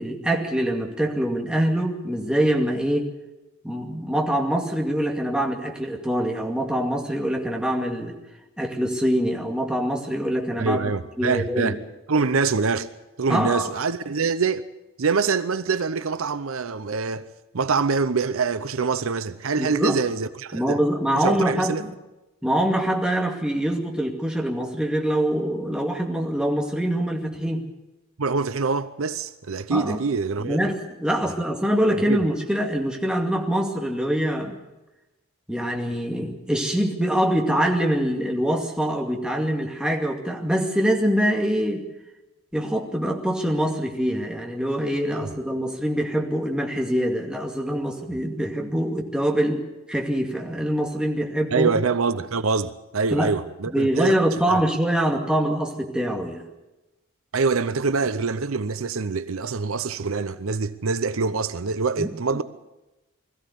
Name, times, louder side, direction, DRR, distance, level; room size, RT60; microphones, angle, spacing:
voice 1, 0.0-3.1 3.6-8.2 8.6-10.8 11.2-11.8 13.3-13.7 19.6-20.0 20.5-21.9 22.4-27.6 29.7-30.0 30.4-34.6 35.5-41.9 42.5-49.6 49.9-51.7 53.1-53.3 53.7-56.4 62.0-62.1, equal, 5° right, 2.3 m, -24 dB
voice 2, 10.6-11.7 12.1-12.9 13.2-14.6 15.0-17.3 17.5-20.8 21.1-21.8 28.2-30.6 31.9-32.2 51.5-54.1 54.5-54.6 57.3-62.4, right 4 dB, 70° right, 0.7 m, -25 dB
21.0 x 14.5 x 8.3 m
head